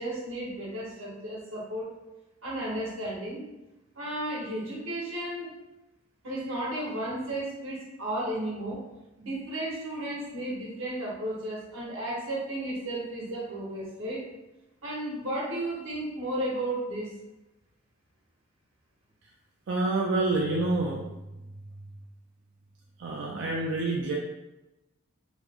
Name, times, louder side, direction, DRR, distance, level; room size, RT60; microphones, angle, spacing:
voice 1, 0.0-1.9 2.4-3.5 3.9-5.6 6.2-8.8 9.2-14.3 14.8-17.2, right 1 dB, 90° right, -4 dB, 1.1 m, -33 dB
voice 2, 19.7-21.4 23.0-24.1, right 2 dB, 65° right, -3 dB, 0.4 m, -28 dB
3.0 x 2.0 x 3.5 m, 0.99 s
head